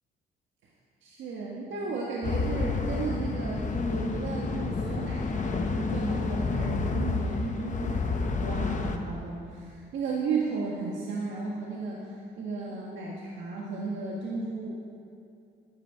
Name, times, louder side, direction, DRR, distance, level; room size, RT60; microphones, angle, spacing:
voice 1, 1.0-12.1 12.4-14.7, right 4 dB, 75° right, -3 dB, 1.5 m, -34 dB
sound 1, 2.2-9.0, left 4 dB, 40° left, 1.0 m, -29 dB
12.0 x 11.0 x 4.5 m, 2.6 s
cardioid pair, 90°, 20 cm